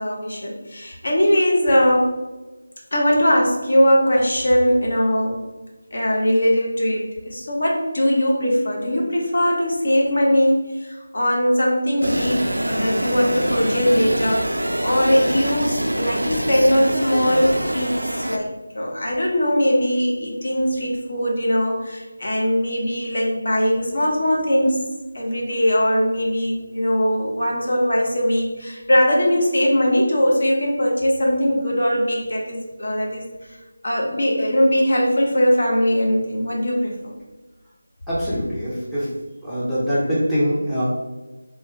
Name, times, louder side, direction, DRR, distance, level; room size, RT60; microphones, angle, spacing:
voice 1, 0.0-2.2 2.9-5.4 5.9-24.8 25.1-33.2 33.8-37.1, equal, 55° left, -2 dB, 0.9 m, -20 dB
sound 1, 12.0-18.4, right 1 dB, 80° right, 0.4 m, -24 dB
voice 2, 38.1-39.1 39.4-40.8, equal, ahead, -13 dB, 0.6 m, -23 dB
3.5 x 2.6 x 3.1 m, 1.1 s
figure-of-eight pair, 160°, 0 cm